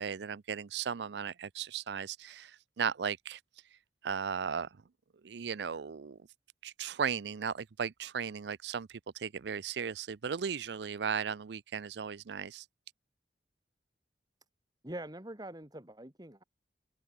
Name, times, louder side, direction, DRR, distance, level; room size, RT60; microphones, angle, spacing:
voice 1, 0.0-3.4 4.0-4.7 5.2-6.2 6.6-12.6, right 7 dB, 70° right, 0.5 m, -36 dB
voice 2, 14.8-16.4, right 1 dB, 20° right, 2.3 m, -44 dB
open air
head